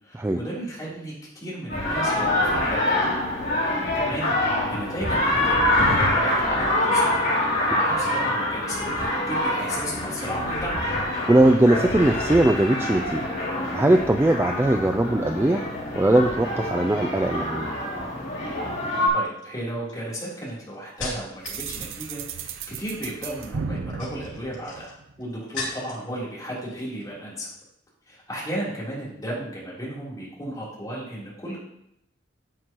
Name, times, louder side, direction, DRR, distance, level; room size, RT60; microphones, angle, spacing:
voice 1, 0.0-3.0 3.9-7.1 7.7-10.8 19.1-27.5 28.1-31.6, right 1 dB, 20° left, -7 dB, 3.3 m, -34 dB
sound 1, 1.7-19.1, left 1 dB, 60° left, 2.9 m, -25 dB
voice 2, 11.3-13.2 13.7-15.6 15.9-17.7, right 1 dB, 15° right, 5 dB, 0.3 m, -20 dB
sound 2, 18.2-18.5 19.2-21.6 21.9-22.4 23.7-26.1 26.4-27.1 27.4-27.6, left 3 dB, 80° left, 2.5 m, -38 dB
sound 3, 21.4-25.3, right 5 dB, 90° right, 0.6 m, -35 dB
9.6 x 7.6 x 3.0 m, 0.79 s
head